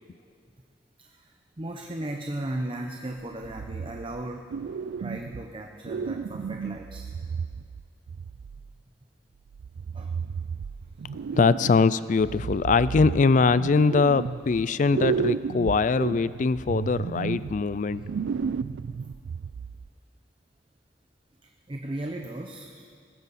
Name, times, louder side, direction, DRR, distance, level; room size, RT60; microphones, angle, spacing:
voice 1, 1.0-4.5 5.0-7.1 9.9-10.1 21.4-22.8, right 1 dB, 30° right, 2 dB, 0.8 m, -36 dB
sound 1, 3.4-4.2 4.5-5.5 5.8-8.7 9.5-11.9 12.2-14.6 14.9-19.9, right 6 dB, 85° right, 0.3 m, -33 dB
voice 2, 11.3-18.0, left 4 dB, 45° left, 17 dB, 0.4 m, -22 dB
20.5 x 16.0 x 4.2 m, 2.2 s
head